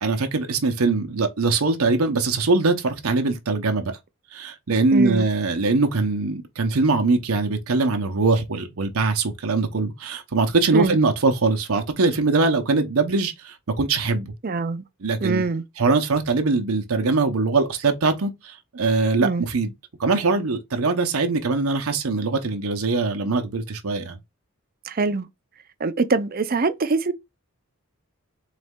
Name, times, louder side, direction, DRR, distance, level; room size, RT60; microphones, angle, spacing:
voice 1, 0.0-4.0 4.3-14.3 15.0-15.4 15.8-19.7 20.0-24.2, right 3 dB, 80° right, 0.8 m, -22 dB
voice 2, 4.9-5.3 10.7-11.0 14.4-14.8 15.2-15.6 19.2-19.4 24.9-25.3 25.8-27.1, right 3 dB, 45° right, 0.5 m, -23 dB
4.1 x 3.2 x 3.6 m
head